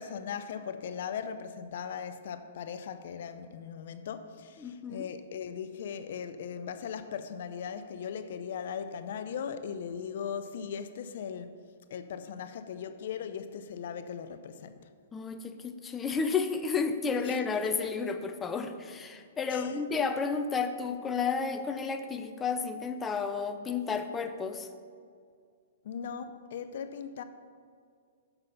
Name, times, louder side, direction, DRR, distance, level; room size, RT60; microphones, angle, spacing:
voice 1, 0.0-11.6 11.9-14.8 17.2-17.4 19.5-19.8 25.8-27.2, left 7 dB, 65° left, 0.5 m, -38 dB
voice 2, 4.6-5.1 15.1-24.7, left 5 dB, 15° left, 0.5 m, -32 dB
6.6 x 5.9 x 5.7 m
hypercardioid pair, 130°, 0 cm